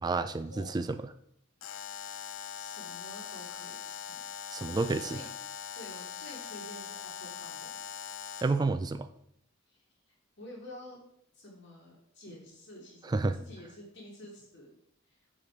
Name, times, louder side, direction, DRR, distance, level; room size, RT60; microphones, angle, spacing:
voice 1, 0.0-1.0 4.5-5.2 8.4-9.1 13.1-13.4, right 3 dB, 20° right, 11 dB, 0.3 m, -30 dB
Alarm, 1.6-8.6, left 8 dB, 75° left, 0.5 m, -42 dB
voice 2, 2.6-4.2 4.5-5.3 5.7-7.7 9.7-9.8 10.4-11.0 11.3-14.7 15.1-15.2, left 1 dB, 60° left, -2 dB, 2.8 m, -49 dB
9.7 x 5.0 x 4.7 m, 0.71 s
head